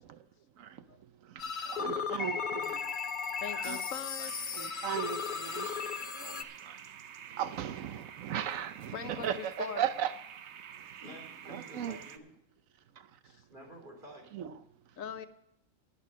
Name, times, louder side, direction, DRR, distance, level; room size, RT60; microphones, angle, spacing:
sound 1, 1.4-6.4, left 6 dB, 45° left, 0.7 m, -36 dB
voice 1, 1.5-2.9 3.5-3.8 4.5-5.8 6.1-6.7 7.3-10.1 11.5-12.0 14.3-14.5, right 9 dB, 85° right, 1.1 m, -37 dB
voice 2, 3.4-4.5 8.9-9.8 13.3-13.4 15.0-15.3, left 7 dB, 85° left, 1.2 m, -41 dB
sound 2, 4.3-12.2, right 8 dB, 65° right, 0.9 m, -49 dB
voice 3, 11.0-12.3 13.5-14.3, right 1 dB, 40° right, 3.4 m, -49 dB
11.0 x 9.5 x 5.4 m
omnidirectional pair, 1.4 m